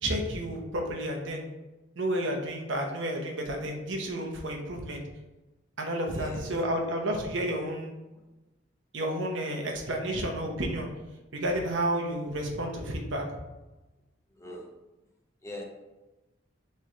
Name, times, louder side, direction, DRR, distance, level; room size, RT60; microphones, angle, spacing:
voice 1, 0.0-1.5 2.0-5.0 5.8-8.0 8.9-10.9 11.3-13.2, right 1 dB, 75° right, 1 dB, 0.8 m, -31 dB
voice 2, 6.1-6.5 14.3-14.7 15.4-15.7, left 1 dB, 15° left, 0 dB, 0.6 m, -41 dB
3.7 x 3.3 x 4.3 m, 1.1 s
head